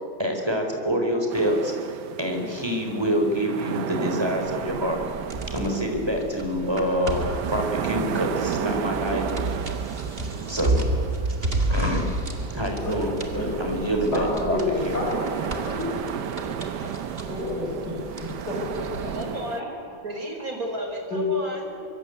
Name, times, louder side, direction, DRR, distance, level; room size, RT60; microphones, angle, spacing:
voice 1, 0.2-5.0 5.5-9.2 10.5-10.9 11.7-12.1 12.5-13.1 13.6-15.0, equal, 10° right, 3 dB, 4.1 m, -26 dB
sound 1, 1.3-19.6, right 9 dB, 65° right, 1.4 m, -34 dB
sound 2, 4.8-19.2, right 2 dB, 30° right, 2.3 m, -32 dB
voice 2, 14.1-16.3 16.8-16.9 17.3-17.9 18.2-18.6 19.0-19.6 21.1-21.3 21.7-21.8, left 2 dB, 55° left, -3 dB, 6.6 m, -30 dB
voice 3, 19.1-21.7, equal, 45° right, 2 dB, 4.9 m, -32 dB
24.0 x 23.5 x 8.2 m, 2.3 s
omnidirectional pair, 2.1 m